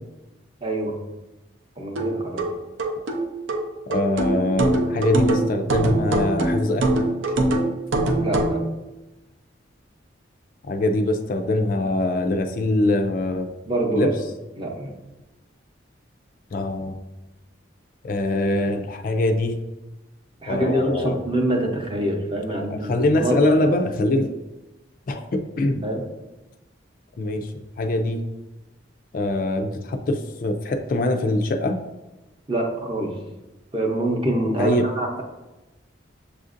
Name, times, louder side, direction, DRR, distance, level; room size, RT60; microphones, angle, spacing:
voice 1, 0.6-1.0 1.8-2.4 8.2-8.6 13.7-14.1 14.6-14.9 20.4-23.4 25.8-26.0 32.5-33.1 33.7-35.2, right 1 dB, 25° right, 1 dB, 0.6 m, -25 dB
sound 1, 2.0-8.6, right 1 dB, 80° right, 0.5 m, -23 dB
voice 2, 3.9-6.9 10.7-13.5 13.9-14.1 16.5-17.0 18.0-19.6 20.5-21.2 22.6-24.3 25.1-25.8 27.2-27.5 27.8-28.2 29.1-31.8 34.6-34.9, left 1 dB, 45° left, 5 dB, 0.3 m, -23 dB
6.9 x 2.5 x 2.5 m, 1.0 s
head